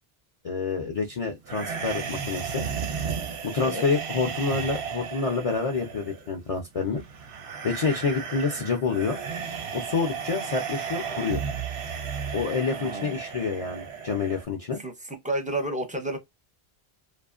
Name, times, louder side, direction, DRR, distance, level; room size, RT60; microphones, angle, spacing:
voice 1, 0.4-2.6 3.4-7.0 7.6-9.2 9.7-11.4 12.3-14.8, left 4 dB, 45° left, 0.5 m, -28 dB
sound 1, 1.4-14.4, right 6 dB, 85° right, 1.0 m, -34 dB
voice 2, 12.7-13.2 14.8-16.2, right 1 dB, 10° right, 0.5 m, -31 dB
2.6 x 2.4 x 2.4 m
omnidirectional pair, 1.1 m